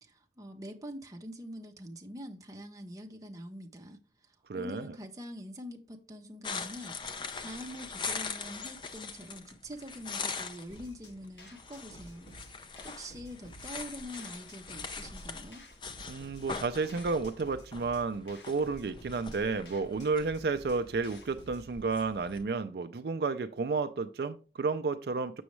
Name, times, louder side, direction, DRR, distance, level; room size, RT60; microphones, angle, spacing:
voice 1, 0.0-7.0 7.4-12.3 12.8-15.6, equal, 20° right, 0.8 m, -45 dB
voice 2, 4.5-5.0 16.1-25.4, right 4 dB, 60° right, 0.4 m, -32 dB
sound 1, 6.4-22.4, left 4 dB, 25° left, 0.5 m, -42 dB
sound 2, 10.7-21.7, equal, 75° left, 1.5 m, -53 dB
6.9 x 6.2 x 3.1 m
head